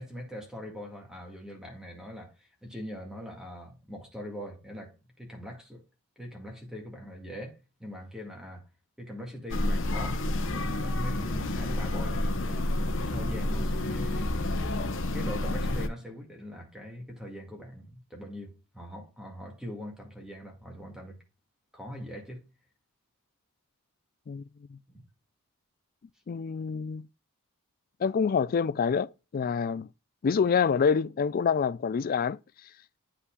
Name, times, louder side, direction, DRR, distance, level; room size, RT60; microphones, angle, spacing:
voice 1, 0.0-5.8 6.2-8.6 9.0-12.7 12.9-14.4 15.0-21.2 21.7-22.5 24.9-25.0, equal, 5° right, 1.9 m, -42 dB
sound 1, 9.5-15.9, left 1 dB, 60° left, 0.9 m, -29 dB
voice 2, 26.3-27.0 28.0-29.9 30.2-32.4, left 6 dB, 40° left, 0.3 m, -26 dB
9.6 x 5.7 x 2.3 m
head